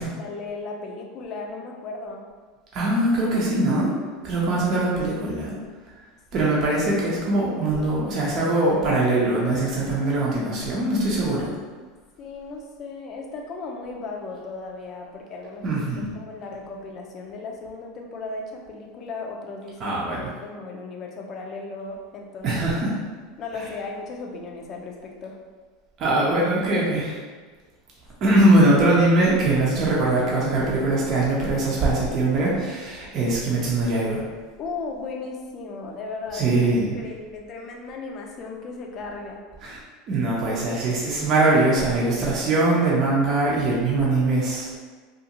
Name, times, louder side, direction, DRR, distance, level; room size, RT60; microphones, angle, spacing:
voice 1, 0.0-2.3 6.3-6.4 12.2-15.7 16.1-22.5 23.4-25.4 28.2-28.4 34.6-36.6 37.0-39.4, left 3 dB, 45° left, 1 dB, 0.5 m, -36 dB
voice 2, 2.7-3.9 4.2-5.5 6.3-11.5 15.6-16.1 19.8-20.3 22.4-23.0 26.0-27.2 28.2-34.2 36.3-37.0 39.6-39.8 40.1-44.8, right 2 dB, 45° right, -5 dB, 0.7 m, -22 dB
2.5 x 2.5 x 2.8 m, 1.4 s
hypercardioid pair, 95°, 0 cm